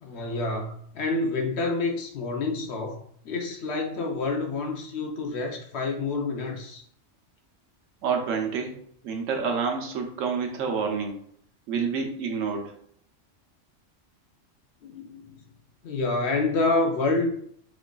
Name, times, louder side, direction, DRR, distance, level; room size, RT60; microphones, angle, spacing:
voice 1, 0.0-3.0 3.2-6.8 14.8-15.4 15.8-17.3, left 3 dB, 65° left, 2 dB, 0.8 m, -28 dB
voice 2, 8.0-8.8 9.0-11.2 11.7-12.7, right 5 dB, 85° right, 2 dB, 1.1 m, -28 dB
4.5 x 2.4 x 2.2 m, 0.63 s
omnidirectional pair, 1.3 m